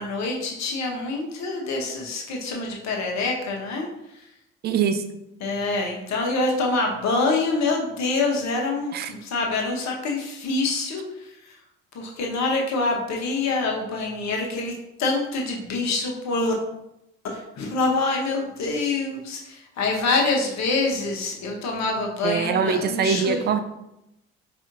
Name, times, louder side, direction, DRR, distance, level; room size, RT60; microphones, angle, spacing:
voice 1, 0.0-4.3 5.4-11.6 11.9-16.5 17.3-23.4, left 3 dB, 45° left, 0 dB, 1.0 m, -26 dB
voice 2, 4.6-5.0 8.9-9.1 22.2-23.6, right 6 dB, 30° right, 8 dB, 0.4 m, -23 dB
4.7 x 2.6 x 2.6 m, 0.86 s
figure-of-eight pair, 50°, 38 cm